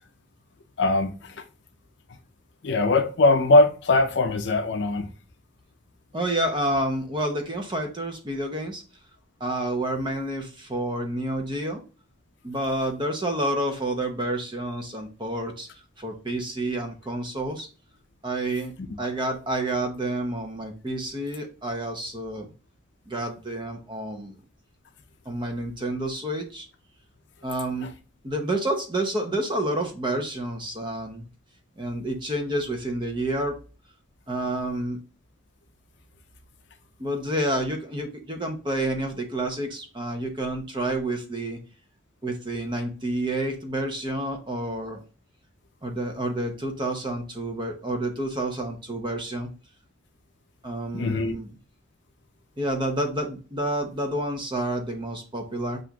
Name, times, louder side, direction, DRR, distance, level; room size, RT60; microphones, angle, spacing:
voice 1, 0.8-1.4 2.6-5.1 19.0-19.1 27.8-27.9 50.9-51.4, left 2 dB, 60° left, 0.5 m, -21 dB
voice 2, 6.1-8.8 9.4-11.8 12.4-15.7 16.0-17.7 18.2-22.5 23.1-24.4 25.3-26.7 27.4-27.9 28.2-31.2 31.8-33.5 34.3-35.0 37.0-41.6 42.2-45.0 45.8-49.5 50.6-51.5 52.6-55.8, right 1 dB, 25° right, 0.7 m, -29 dB
7.4 x 2.5 x 2.3 m
head